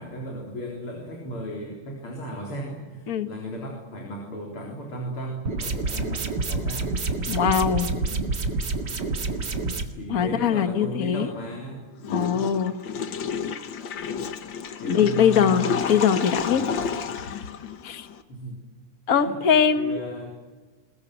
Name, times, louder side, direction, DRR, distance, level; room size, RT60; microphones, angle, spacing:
voice 1, 0.0-6.9 7.3-7.6 8.1-8.3 9.1-9.4 9.9-11.8 12.1-12.4 14.8-16.1 16.5-16.7 18.3-18.6 19.2-19.4 19.8-20.4, equal, 80° left, -1 dB, 4.7 m, -36 dB
sound 1, 5.5-9.8, right 3 dB, 50° right, 2.5 m, -28 dB
voice 2, 7.3-7.9 10.1-11.3 12.1-12.7 14.8-16.6 17.8-18.1 19.1-20.0, left 7 dB, 45° left, 9 dB, 1.7 m, -22 dB
Water / Toilet flush, 12.0-18.2, left 6 dB, 60° left, 1.9 m, -31 dB
22.0 x 21.5 x 9.5 m, 1.3 s
omnidirectional pair, 2.4 m